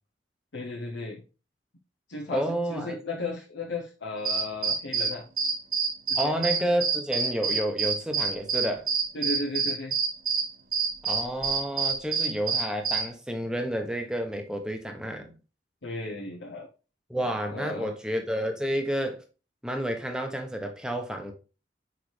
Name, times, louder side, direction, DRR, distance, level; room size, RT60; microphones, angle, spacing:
voice 1, 0.5-1.2 2.1-5.2 6.1-6.4 9.1-9.9 15.8-16.7 17.5-17.9, left 2 dB, 80° left, 0.9 m, -35 dB
voice 2, 2.3-3.2 6.2-8.9 11.0-15.3 17.1-19.2 19.6-21.3, equal, 5° right, 0.9 m, -30 dB
sound 1, 4.2-13.1, right 5 dB, 50° right, 1.1 m, -27 dB
6.2 x 4.7 x 3.2 m
head